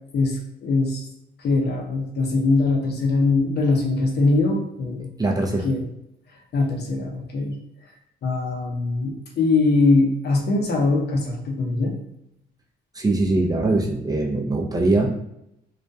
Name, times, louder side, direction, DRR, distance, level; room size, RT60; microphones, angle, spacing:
voice 1, 0.1-1.1 1.4-5.1 5.6-5.8 6.5-7.6 8.2-12.0, left 3 dB, 55° left, 0 dB, 0.7 m, -22 dB
voice 2, 5.2-5.7 12.9-15.1, right 2 dB, 20° right, 0 dB, 0.4 m, -22 dB
2.3 x 2.1 x 2.6 m, 0.81 s
cardioid pair, 90°, 20 cm